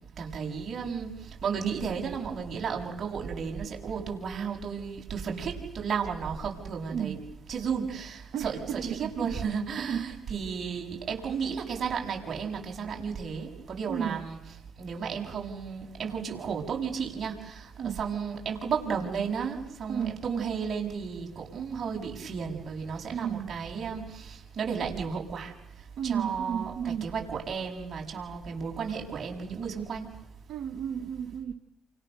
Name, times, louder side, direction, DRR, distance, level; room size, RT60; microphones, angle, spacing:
voice 1, 0.2-1.1 1.4-7.2 7.5-14.4 14.8-17.7 18.0-25.5 26.0-30.1, right 6 dB, 55° right, 1 dB, 7.3 m, -33 dB
voice 2, 8.3-9.3 9.8-10.0 13.9-14.2 17.8-18.0 19.9-20.2 23.1-23.6 26.0-27.1 30.5-31.5, right 8 dB, 75° right, 6 dB, 1.7 m, -33 dB
29.5 x 28.0 x 6.9 m, 0.84 s
supercardioid pair, 65°, 0 cm